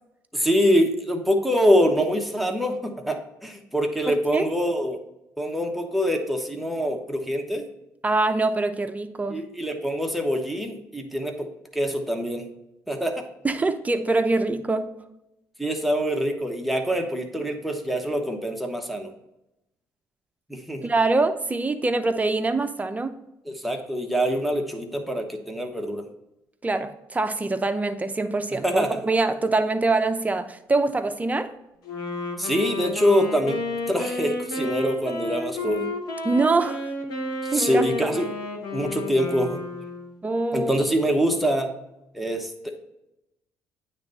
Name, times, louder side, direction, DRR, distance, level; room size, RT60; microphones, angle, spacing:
voice 1, 0.3-5.0 5.4-7.6 9.3-12.5 12.9-13.2 15.6-19.1 20.5-20.9 23.6-26.1 28.6-29.0 32.4-33.6 33.9-35.9 37.4-38.3 38.7-39.6 40.5-41.7 42.1-42.8, equal, ahead, 4 dB, 1.2 m, -24 dB
voice 2, 4.1-4.5 8.0-9.4 13.4-14.9 20.8-23.2 26.6-31.5 36.2-36.9 37.5-38.1 40.2-40.7, right 3 dB, 20° right, 8 dB, 0.7 m, -24 dB
Wind instrument woodwind instrument, 31.8-40.2, left 2 dB, 70° left, 1.5 m, -31 dB
9.2 x 3.3 x 4.1 m, 0.89 s
supercardioid pair, 65°, 7 cm